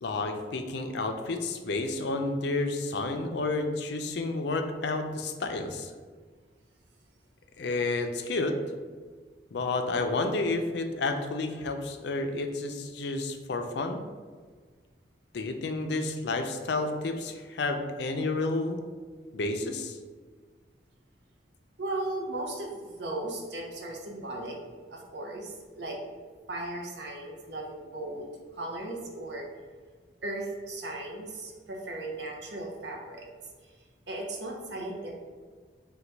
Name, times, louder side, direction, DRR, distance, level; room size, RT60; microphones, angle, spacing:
voice 1, 0.0-5.9 7.6-8.6 9.5-14.0 15.3-18.8 19.3-20.0, left 3 dB, 70° left, 5 dB, 0.4 m, -30 dB
voice 2, 21.8-24.6 24.9-26.0 26.5-29.5 30.2-33.3 34.1-35.1, right 2 dB, 70° right, 0 dB, 0.7 m, -36 dB
3.9 x 2.3 x 4.4 m, 1.5 s
head